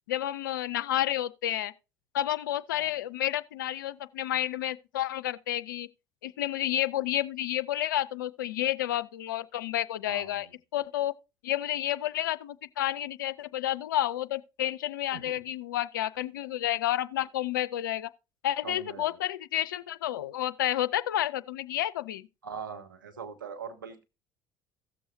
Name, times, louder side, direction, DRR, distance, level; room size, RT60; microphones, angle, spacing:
voice 1, 0.1-1.7 2.1-5.9 6.2-10.5 10.7-11.1 11.4-18.1 18.4-22.2, left 12 dB, 75° left, 0.4 m, -30 dB
voice 2, 10.1-10.5 15.1-15.4 18.6-19.2 22.4-24.0, right 6 dB, 85° right, 1.0 m, -42 dB
16.5 x 6.9 x 2.7 m
figure-of-eight pair, 60°, 11 cm